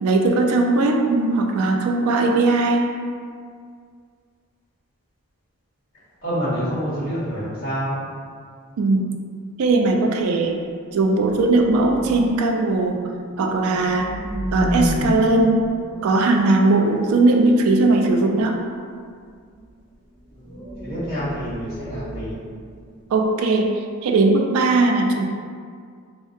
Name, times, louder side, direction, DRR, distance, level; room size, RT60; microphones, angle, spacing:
voice 1, 0.0-2.9 8.8-9.1 9.6-10.6 10.9-13.0 13.4-14.1 14.5-15.6 16.0-18.6 23.1-25.2, right 2 dB, 70° right, 3 dB, 0.3 m, -19 dB
voice 2, 6.2-7.9 20.3-20.5 20.8-22.3, equal, 45° left, -13 dB, 0.9 m, -27 dB
sound 1, 9.6-9.8 10.1-10.3 11.0-12.5 13.1-17.9 19.4-19.8 20.2-23.2, equal, 85° left, 0.9 m, -31 dB
2.6 x 2.0 x 2.5 m, 2.1 s
head